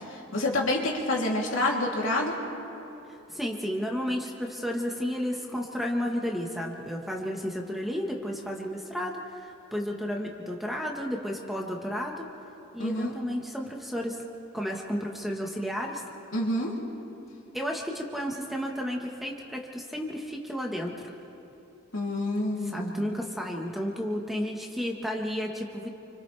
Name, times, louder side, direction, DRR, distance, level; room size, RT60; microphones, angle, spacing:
voice 1, 0.1-2.4 12.8-13.1 16.3-16.7 21.9-23.1, left 1 dB, 70° left, -2 dB, 3.2 m, -28 dB
voice 2, 3.1-12.3 12.7-14.2 14.5-16.0 17.5-21.0 22.6-25.9, equal, ahead, 0 dB, 1.5 m, -32 dB
29.5 x 25.5 x 3.5 m, 2.8 s
head